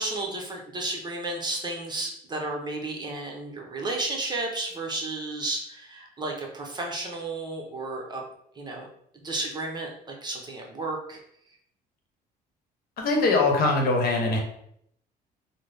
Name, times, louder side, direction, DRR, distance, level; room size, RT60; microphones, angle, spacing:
voice 1, 0.0-8.2 8.6-8.9 9.2-9.9 10.2-11.2, right 2 dB, 25° right, 0 dB, 0.7 m, -32 dB
voice 2, 13.0-14.4, left 3 dB, 60° left, 1 dB, 0.9 m, -22 dB
3.7 x 2.0 x 3.3 m, 0.71 s
cardioid pair, 110°, 17 cm